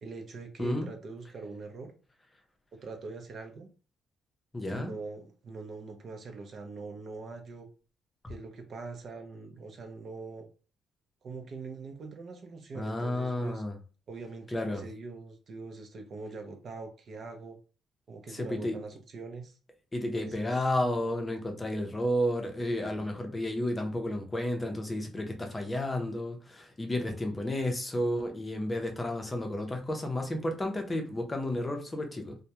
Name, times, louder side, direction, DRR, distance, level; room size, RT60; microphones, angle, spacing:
voice 1, 0.0-1.9 2.7-3.7 4.7-7.7 8.3-10.5 11.2-13.6 14.1-17.6 18.1-19.5 20.1-20.5, right 4 dB, 50° right, 0.5 m, -43 dB
voice 2, 4.5-4.9 12.7-13.7 14.5-14.9 18.3-18.8 19.9-32.4, left 1 dB, 20° left, 0.6 m, -32 dB
2.2 x 2.1 x 2.8 m
cardioid pair, 90°, 0 cm